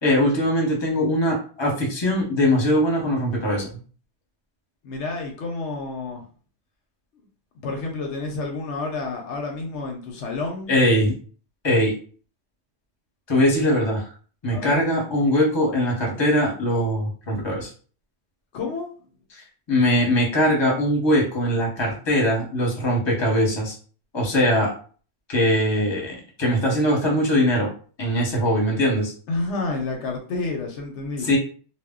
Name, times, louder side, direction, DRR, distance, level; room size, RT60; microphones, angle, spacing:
voice 1, 0.0-3.7 10.7-11.1 11.6-11.9 13.3-14.0 14.4-17.7 19.7-23.8 24.1-24.7 25.3-27.7 28.0-29.1 31.2-31.4, equal, 25° left, -2 dB, 0.9 m, -21 dB
voice 2, 4.8-6.2 7.2-7.3 7.6-10.8 14.5-14.8 18.5-18.9 29.3-31.3, left 3 dB, 75° left, 2 dB, 0.9 m, -29 dB
2.2 x 2.1 x 3.6 m, 0.41 s
omnidirectional pair, 1.3 m